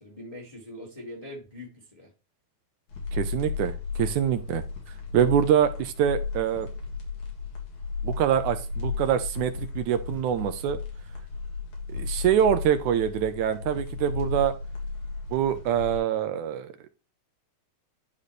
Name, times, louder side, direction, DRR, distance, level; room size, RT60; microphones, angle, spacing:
voice 1, 0.0-2.1, left 1 dB, 15° left, 1.5 m, -42 dB
sound 1, 2.9-16.0, left 5 dB, 80° left, 3.4 m, -34 dB
voice 2, 3.1-4.6 5.1-6.7 8.0-10.8 11.9-14.5 15.3-16.7, right 9 dB, 85° right, 2.2 m, -25 dB
11.5 x 4.2 x 3.2 m
omnidirectional pair, 3.3 m